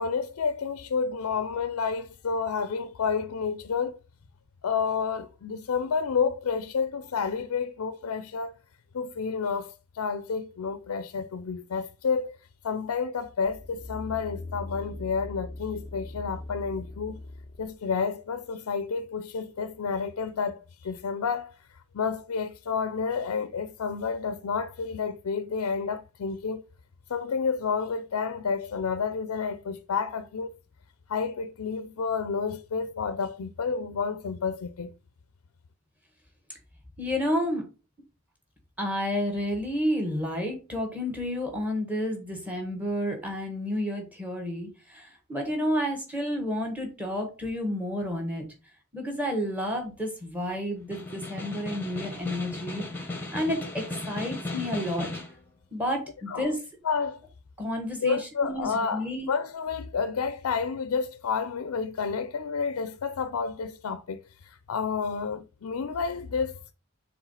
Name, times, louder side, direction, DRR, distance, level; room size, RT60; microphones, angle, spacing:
voice 1, 0.0-4.0 4.6-8.5 8.9-12.4 12.6-17.2 17.6-20.6 20.8-21.6 21.9-26.6 27.1-30.5 31.1-34.9 56.3-56.6 56.8-57.2 58.0-66.7, left 5 dB, 85° left, 0.4 m, -30 dB
sound 1, 13.4-17.8 18.3-18.4, left 2 dB, 30° left, 0.5 m, -41 dB
voice 2, 37.0-37.6 38.8-48.4 48.9-55.1 55.7-56.6 57.6-59.3, equal, 5° right, 1.5 m, -30 dB
Snare drum, 50.8-55.4, left 2 dB, 10° left, 1.1 m, -36 dB
4.8 x 3.6 x 5.6 m
head